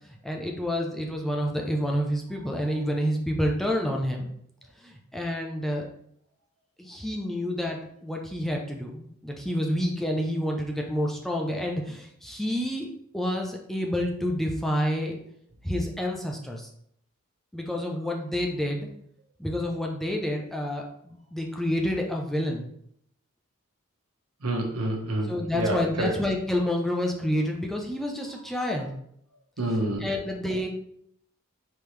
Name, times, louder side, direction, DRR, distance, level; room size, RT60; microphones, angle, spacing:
voice 1, 0.0-4.3 4.8-5.9 6.8-12.9 13.1-15.2 15.6-16.7 17.5-18.9 19.4-22.7 25.3-28.9 30.0-30.7, equal, ahead, 0 dB, 0.5 m, -29 dB
voice 2, 24.4-26.1 29.6-30.1, right 1 dB, 90° right, 0 dB, 1.2 m, -28 dB
4.7 x 3.5 x 3.2 m, 0.70 s
head